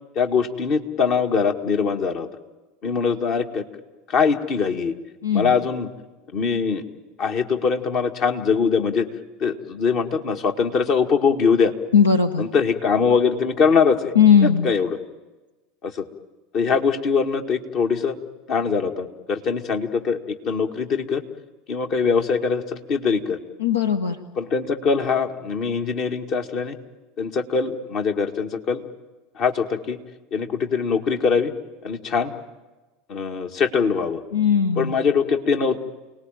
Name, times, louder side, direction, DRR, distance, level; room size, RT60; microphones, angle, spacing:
voice 1, 0.2-2.3 2.8-3.6 4.1-4.9 5.3-5.9 6.3-6.8 7.2-9.1 9.4-11.7 12.4-14.1 14.4-15.0 15.8-16.1 16.5-18.2 18.5-21.2 21.7-23.4 24.4-26.8 27.2-28.9 29.4-30.0 30.3-31.5 31.8-32.4 33.1-34.2 34.8-35.8, left 5 dB, 50° left, 5 dB, 2.0 m, -22 dB
voice 2, 11.9-12.4 14.1-14.7 23.6-24.2 34.3-34.9, left 7 dB, 90° left, 9 dB, 1.0 m, -18 dB
29.0 x 19.5 x 9.1 m, 1.2 s
hypercardioid pair, 80°, 0 cm